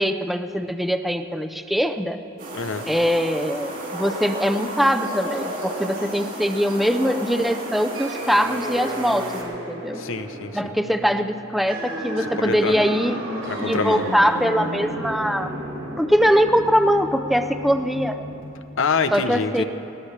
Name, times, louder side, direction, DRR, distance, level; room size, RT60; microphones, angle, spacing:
voice 1, 0.0-2.2 2.9-10.0 10.5-13.2 13.6-15.5 16.0-18.2 19.1-19.6, equal, ahead, 7 dB, 0.5 m, -22 dB
sound 1, 2.4-9.4, right 1 dB, 50° right, 3.8 m, -33 dB
voice 2, 2.5-2.9 9.9-10.7 12.2-12.8 13.5-14.0 18.8-19.6, left 5 dB, 70° left, 9 dB, 0.8 m, -26 dB
sound 2, 7.9-18.4, right 1 dB, 90° right, 3.9 m, -33 dB
20.0 x 19.0 x 3.3 m, 3.0 s
head